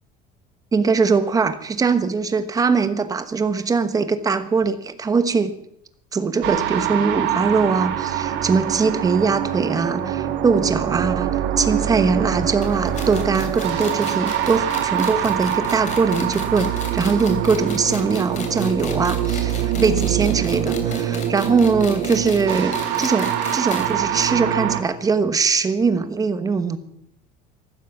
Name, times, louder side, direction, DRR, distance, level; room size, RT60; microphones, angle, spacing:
voice 1, 0.7-5.5 6.1-26.8, right 4 dB, 20° right, 11 dB, 1.2 m, -21 dB
sound 1, 6.4-24.8, right 10 dB, 65° right, 2.2 m, -24 dB
sound 2, 12.6-23.9 24.2-24.3 24.6-24.7 25.5-25.6, left 5 dB, 40° left, 3.0 m, -36 dB
14.5 x 13.0 x 7.2 m, 0.72 s
cardioid pair, 160°, 19 cm